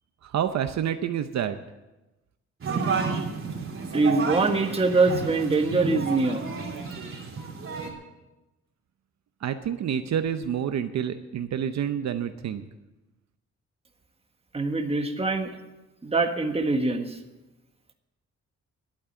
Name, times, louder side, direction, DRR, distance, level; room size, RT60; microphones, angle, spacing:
voice 1, 0.2-1.6 9.4-12.6, right 9 dB, 65° right, 9 dB, 0.8 m, -28 dB
sound 1, 2.6-7.9, right 5 dB, 45° right, 3.1 m, -31 dB
voice 2, 3.9-6.4 14.5-15.5 16.0-17.2, right 3 dB, 20° right, 5 dB, 1.5 m, -23 dB
11.5 x 8.8 x 9.4 m, 1.0 s
cardioid pair, 120°, 29 cm